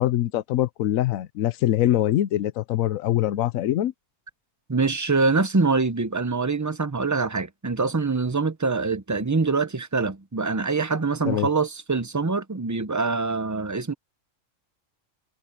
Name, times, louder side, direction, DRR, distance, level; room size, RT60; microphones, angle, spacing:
voice 1, 0.0-3.9 11.3-11.5, left 13 dB, 90° left, 1.1 m, -23 dB
voice 2, 4.7-13.9, right 4 dB, 20° right, 0.5 m, -24 dB
omnidirectional pair, 1.4 m